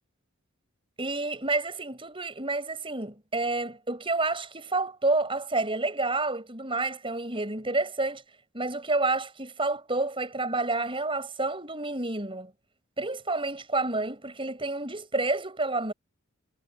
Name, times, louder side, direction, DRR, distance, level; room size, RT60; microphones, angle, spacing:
voice 1, 1.0-8.2 8.5-12.5 13.0-15.9, right 2 dB, 25° right, 7.9 m, -29 dB
head